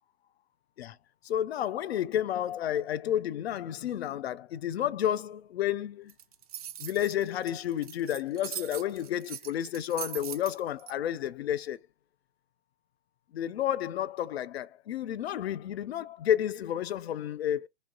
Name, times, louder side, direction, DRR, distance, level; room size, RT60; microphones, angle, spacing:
voice 1, 1.2-6.1 6.8-11.8 13.3-17.7, left 11 dB, 70° left, 0.5 m, -31 dB
sound 1, 6.1-10.9, right 11 dB, 35° right, 0.4 m, -41 dB
3.1 x 2.6 x 4.0 m
hypercardioid pair, 155°, 32 cm